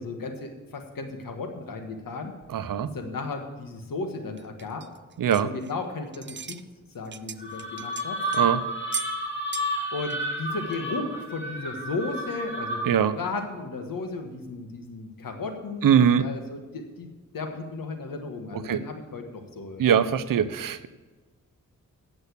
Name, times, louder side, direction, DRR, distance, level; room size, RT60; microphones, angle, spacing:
voice 1, 0.0-2.3 2.9-4.8 5.4-6.6 6.9-8.2 9.9-19.8, left 3 dB, 80° left, 5 dB, 1.6 m, -35 dB
voice 2, 2.5-2.9 5.2-5.5 8.3-8.6 12.9-13.2 15.8-16.3 18.5-18.8 19.8-20.9, right 8 dB, 80° right, 13 dB, 0.7 m, -22 dB
sound 1, 4.4-5.9 6.1-6.6 6.9-8.5 8.9-9.2 9.5-9.8 10.0-10.2 10.7-10.8, right 8 dB, 35° right, 0.5 m, -37 dB
sound 2, 7.4-13.1, right 1 dB, 35° left, 2.1 m, -31 dB
8.2 x 7.0 x 8.5 m, 1.2 s
wide cardioid pair, 80°, 33 cm